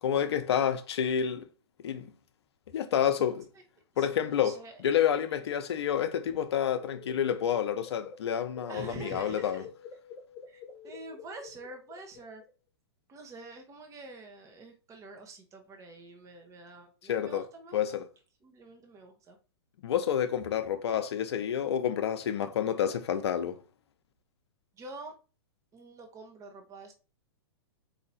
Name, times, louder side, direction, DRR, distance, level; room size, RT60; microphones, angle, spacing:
voice 1, 0.0-1.5 1.8-2.1 2.7-3.5 4.0-4.5 4.8-9.6 17.1-17.4 17.7-18.1 19.8-23.6, left 9 dB, 70° left, 0.7 m, -29 dB
voice 2, 3.9-4.8 8.7-9.7 10.5-12.4 13.1-17.8 18.4-19.4 24.7-25.1 25.7-26.9, right 2 dB, 20° right, 1.0 m, -46 dB
sound 1, 6.0-12.5, left 6 dB, 10° left, 1.2 m, -48 dB
4.3 x 2.8 x 4.1 m
hypercardioid pair, 130°, 14 cm